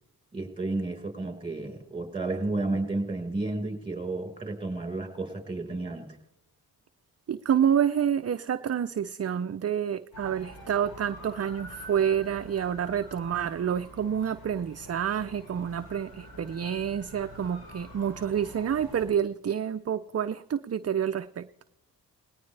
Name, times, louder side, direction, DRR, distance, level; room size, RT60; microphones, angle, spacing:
voice 1, 0.3-6.2, right 2 dB, 15° right, 3 dB, 4.6 m, -32 dB
voice 2, 7.3-21.5, right 8 dB, 40° right, 11 dB, 0.6 m, -28 dB
sound 1, 10.1-19.1, left 1 dB, 65° left, 4.9 m, -46 dB
19.0 x 18.0 x 3.3 m, 0.82 s
cardioid pair, 45°, 39 cm